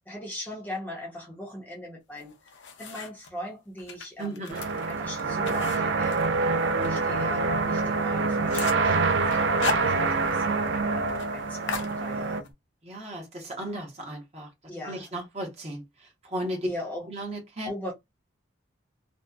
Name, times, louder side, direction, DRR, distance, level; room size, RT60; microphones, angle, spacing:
voice 1, 0.1-2.5 2.8-4.5 4.9-6.3 6.7-12.5 14.7-15.1 16.6-17.1 17.6-17.9, left 1 dB, 10° left, 0.6 m, -40 dB
sound 1, 2.2-3.3 3.8-7.0 7.4-7.5 7.8-7.9 8.2-8.9 9.3-10.4 10.7-10.8 11.1-11.3 11.7-12.5, left 4 dB, 65° left, 0.5 m, -36 dB
voice 2, 4.2-4.6 12.8-14.5 14.8-15.8 16.3-16.7 17.1-17.7, right 1 dB, 30° right, 0.8 m, -35 dB
sound 2, 4.5-12.4, right 3 dB, 65° right, 0.3 m, -26 dB
2.7 x 2.0 x 2.3 m
head